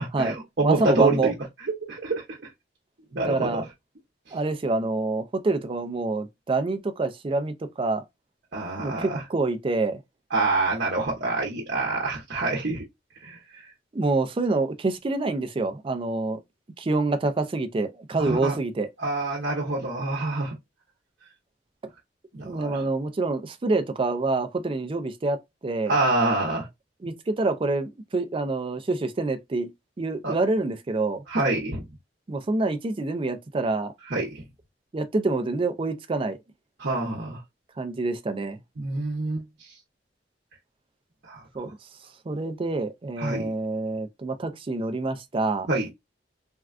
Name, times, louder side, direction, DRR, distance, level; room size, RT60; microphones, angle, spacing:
voice 1, 0.0-1.3 1.9-2.4 3.1-3.6 8.5-9.2 10.3-12.8 13.2-13.6 18.2-18.6 19.0-20.6 22.3-22.8 25.9-26.7 30.2-30.3 31.3-31.8 34.1-34.4 36.8-37.4 38.8-39.7 41.3-41.4 43.2-43.5 45.7-45.9, right 2 dB, 60° right, 0.8 m, -26 dB
voice 2, 0.6-1.3 3.3-3.7 4.3-8.0 8.8-10.0 13.9-16.4 16.8-18.9 22.4-26.0 27.0-29.7 30.0-31.2 32.3-33.9 34.9-36.4 37.8-38.6 41.5-41.7 42.3-45.7, right 3 dB, 30° right, 0.4 m, -26 dB
3.5 x 2.2 x 2.4 m
head